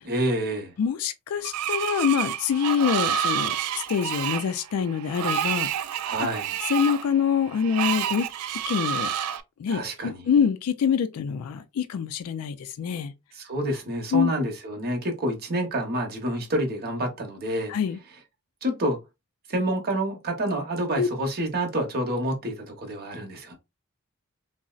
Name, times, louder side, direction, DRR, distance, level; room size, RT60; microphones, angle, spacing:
voice 1, 0.0-0.7 6.0-6.5 9.7-10.1 13.3-17.7 18.6-19.0 19.5-23.6, right 1 dB, 45° right, 0.9 m, -28 dB
voice 2, 0.8-5.7 6.7-8.3 8.7-9.1 9.6-13.1 14.1-14.3 17.7-18.0 21.0-21.1, left 7 dB, 75° left, 0.3 m, -25 dB
Screech, 1.4-9.4, right 9 dB, 85° right, 0.3 m, -29 dB
3.8 x 2.0 x 2.3 m
head